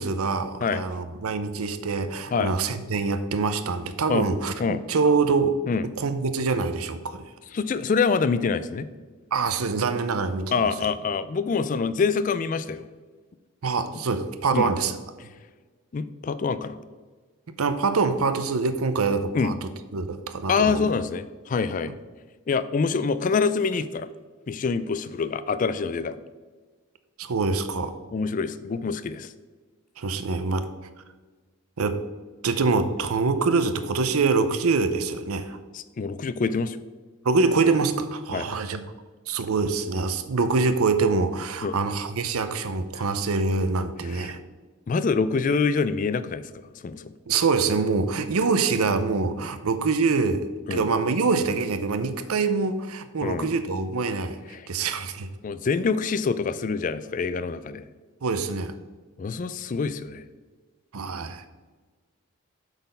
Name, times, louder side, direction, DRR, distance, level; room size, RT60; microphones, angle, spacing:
voice 1, 0.0-5.6 6.0-7.2 9.3-10.7 13.6-15.0 17.6-20.9 27.2-28.0 30.0-30.7 31.8-32.0 32.4-35.6 37.2-38.8 39.3-44.4 47.3-54.4 54.7-55.3 58.2-58.7 60.9-61.4, right 4 dB, 90° right, 11 dB, 0.6 m, -25 dB
voice 2, 7.5-8.9 10.5-12.9 14.5-14.7 15.9-16.8 19.3-19.5 20.5-21.9 22.5-24.1 24.5-26.2 28.1-29.3 35.7-36.8 38.3-38.5 41.6-41.8 43.0-43.1 44.1-44.3 44.9-46.5 46.8-47.1 50.7-50.9 53.2-53.5 54.5-54.7 55.4-57.8 59.2-60.2, left 5 dB, 35° left, 14 dB, 0.3 m, -25 dB
8.0 x 4.1 x 5.3 m, 1.4 s
head